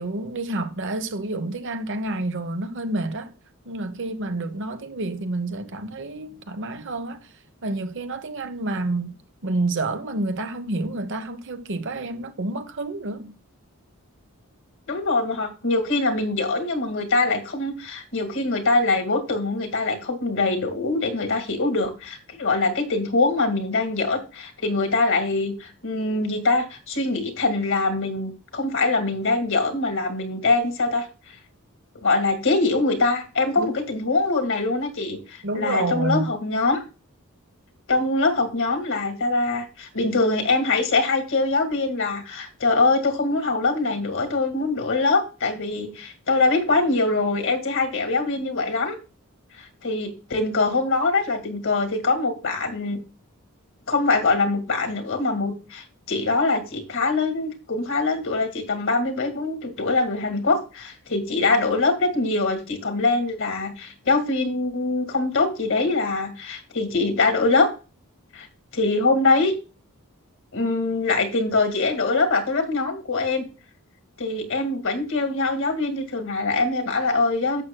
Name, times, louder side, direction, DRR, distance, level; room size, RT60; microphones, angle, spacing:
voice 1, 0.0-3.3 3.6-7.3 7.6-13.3 33.6-33.7 35.4-36.3, right 2 dB, 60° right, 0.9 m, -29 dB
voice 2, 14.9-31.1 32.0-36.8 37.9-49.0 49.6-53.0 53.9-67.7 68.3-68.5 68.7-69.5 70.5-73.5 74.2-77.6, left 3 dB, 60° left, 2.0 m, -23 dB
11.0 x 7.6 x 2.2 m
head